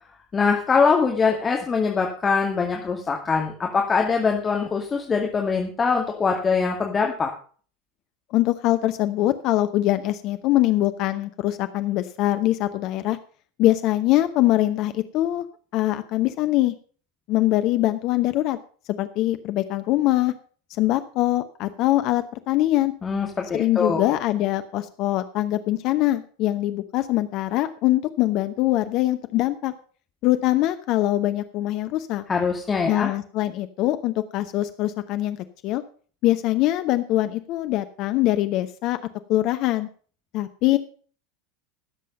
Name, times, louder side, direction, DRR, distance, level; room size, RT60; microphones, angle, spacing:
voice 1, 0.3-7.3 23.0-24.0 32.3-33.1, left 5 dB, 20° left, 1 dB, 2.2 m, -23 dB
voice 2, 8.3-13.2 13.6-15.5 15.7-16.7 17.3-18.6 19.0-20.3 20.8-22.9 23.5-29.7 30.2-32.2 32.9-35.4 35.6-35.8 36.2-39.0 39.3-39.9 40.3-40.8, left 15 dB, 45° left, 10 dB, 0.8 m, -23 dB
16.0 x 7.6 x 5.4 m, 0.43 s
figure-of-eight pair, 80°, 0 cm